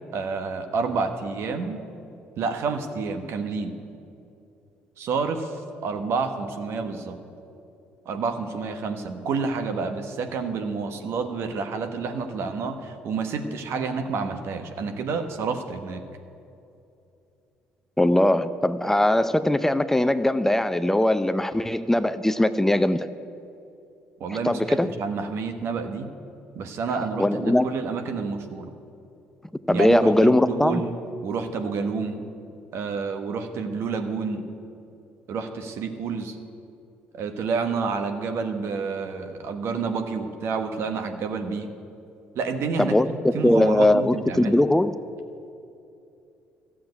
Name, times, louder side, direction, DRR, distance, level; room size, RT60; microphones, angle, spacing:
voice 1, 0.1-1.8 2.4-3.7 5.0-7.2 8.0-16.0 24.2-26.1 26.5-28.7 29.7-30.9 31.2-32.2 32.7-34.4 35.3-36.4 37.1-41.7 42.3-44.6, right 4 dB, 65° right, 7 dB, 1.2 m, -29 dB
voice 2, 18.0-23.1 24.3-24.9 27.2-27.7 29.7-30.8 42.8-45.0, left 1 dB, 10° left, 12 dB, 0.5 m, -20 dB
13.5 x 7.4 x 9.5 m, 2.7 s
supercardioid pair, 65°, 5 cm